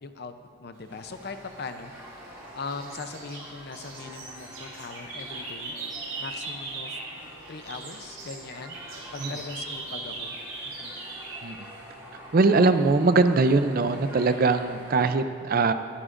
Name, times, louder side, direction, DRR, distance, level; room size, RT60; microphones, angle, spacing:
voice 1, 0.0-0.3 0.6-1.9 2.5-5.7 6.2-7.0 7.5-8.8 9.1-10.4 10.6-11.0, left 4 dB, 55° left, 8 dB, 0.6 m, -40 dB
sound 1, 0.9-15.1, equal, 10° right, 2.4 m, -46 dB
sound 2, 1.5-2.3 2.7-7.2 7.4-11.4, right 3 dB, 80° right, 3.1 m, -39 dB
voice 2, 12.3-15.7, right 3 dB, 45° right, 10 dB, 0.5 m, -21 dB
22.0 x 9.9 x 2.6 m, 2.7 s
head